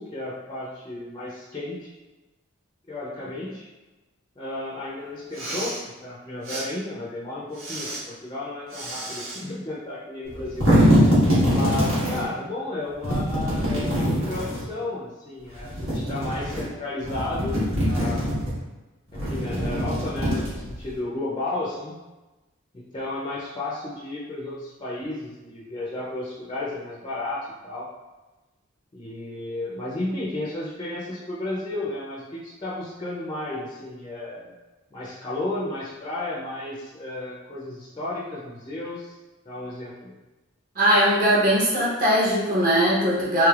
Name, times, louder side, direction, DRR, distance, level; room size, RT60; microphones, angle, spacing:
voice 1, 0.0-1.9 2.9-3.7 4.4-10.7 11.5-18.3 19.1-22.0 22.7-27.9 28.9-34.5 34.9-39.2 39.5-40.1, left 2 dB, 20° left, -6 dB, 0.4 m, -33 dB
Respiratory sounds, 5.2-5.8 6.4-6.7 7.5-8.0 8.7-9.4, right 2 dB, 70° right, 1.0 m, -34 dB
sound 1, 10.3-12.2 13.0-14.6 15.6-16.6 17.0-18.5 19.1-20.9, equal, 85° right, 1.3 m, -22 dB
voice 2, 40.7-43.5, equal, 40° right, -6 dB, 0.8 m, -20 dB
3.2 x 3.0 x 2.3 m, 1.1 s
head